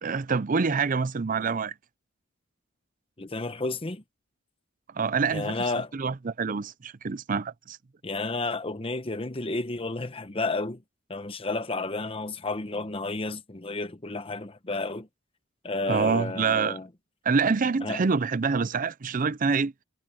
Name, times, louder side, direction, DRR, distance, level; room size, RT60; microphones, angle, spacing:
voice 1, 0.0-1.7 4.9-5.5 5.9-7.8 15.9-16.8 17.2-19.7, right 5 dB, 40° right, 0.5 m, -26 dB
voice 2, 3.2-4.0 5.3-5.9 8.0-10.8 11.1-15.1 15.6-16.9 17.8-18.0, left 3 dB, 30° left, 1.0 m, -31 dB
head